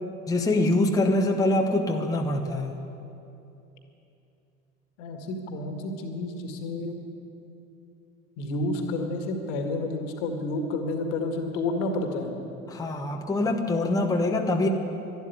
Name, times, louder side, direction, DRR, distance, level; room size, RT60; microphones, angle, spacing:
voice 1, 0.3-2.7 12.7-14.7, left 2 dB, 10° left, 3 dB, 1.0 m, -24 dB
voice 2, 5.0-7.0 8.4-12.3, left 2 dB, 55° left, 5 dB, 1.9 m, -30 dB
12.0 x 12.0 x 9.7 m, 2.8 s
figure-of-eight pair, 70°, 41 cm